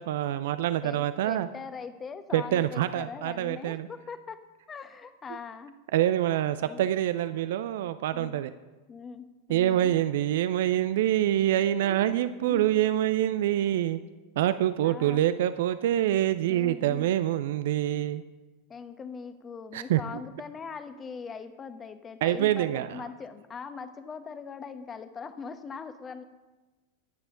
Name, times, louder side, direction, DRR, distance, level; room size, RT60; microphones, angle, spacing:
voice 1, 0.0-1.5 2.3-3.9 5.9-8.5 9.5-14.0 14.4-18.2 19.7-20.0 22.2-23.0, right 12 dB, 60° right, 13 dB, 0.5 m, -26 dB
voice 2, 0.8-4.4 4.7-5.7 6.6-6.8 8.1-8.4 8.9-9.9 11.8-12.1 12.4-12.7 14.4-14.5 14.8-15.3 16.5-17.1 18.7-26.2, left 5 dB, 25° left, 10 dB, 1.2 m, -41 dB
24.5 x 9.1 x 3.9 m, 1.2 s
figure-of-eight pair, 90°, 0 cm